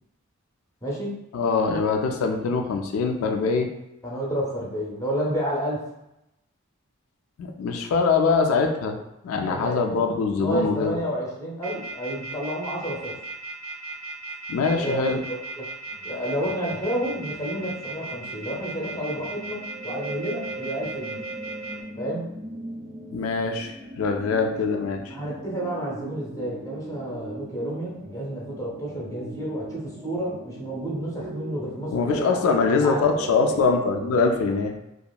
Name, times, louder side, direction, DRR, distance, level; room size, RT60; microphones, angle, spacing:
voice 1, 0.8-1.2 4.0-5.8 9.5-9.8 10.4-13.2 14.7-15.2 15.6-15.7 16.0-21.2 22.0-22.2 24.3-24.4 25.1-32.4 32.8-33.2, right 1 dB, 15° left, -4 dB, 0.6 m, -30 dB
voice 2, 1.3-3.7 7.4-9.0 9.2-11.0 14.5-15.2 23.1-25.1 31.9-34.7, left 4 dB, 70° left, 4 dB, 0.3 m, -23 dB
sound 1, 11.6-21.7, right 2 dB, 80° right, 0.9 m, -36 dB
sound 2, 15.9-34.1, right 1 dB, 40° right, 0.5 m, -40 dB
2.8 x 2.4 x 2.2 m, 0.88 s
head